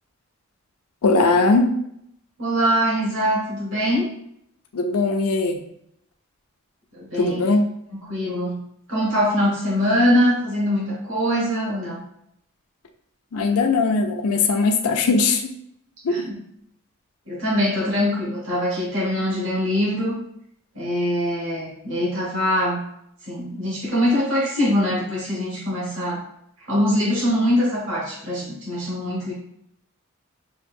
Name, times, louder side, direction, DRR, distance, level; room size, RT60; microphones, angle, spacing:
voice 1, 1.0-1.7 4.7-5.6 7.2-7.7 13.3-15.4 16.0-16.2, left 3 dB, 90° left, 4 dB, 0.5 m, -19 dB
voice 2, 2.4-4.1 6.9-7.5 7.9-8.6 8.9-12.0 16.1-16.4 17.3-20.2 20.7-22.8 23.3-26.2 26.7-29.3, equal, 65° right, -6 dB, 1.5 m, -23 dB
5.7 x 2.6 x 2.6 m, 0.72 s
head